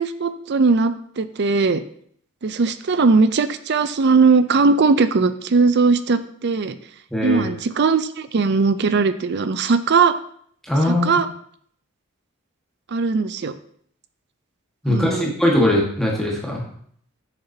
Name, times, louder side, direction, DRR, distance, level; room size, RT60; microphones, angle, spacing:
voice 1, 0.0-1.8 2.4-6.8 7.2-10.1 10.9-11.3 12.9-13.5 14.9-15.3, right 4 dB, 55° right, 12 dB, 0.5 m, -19 dB
voice 2, 7.1-7.5 10.6-11.1 14.8-16.6, left 1 dB, ahead, -3 dB, 1.5 m, -20 dB
9.7 x 6.7 x 2.8 m, 0.63 s
head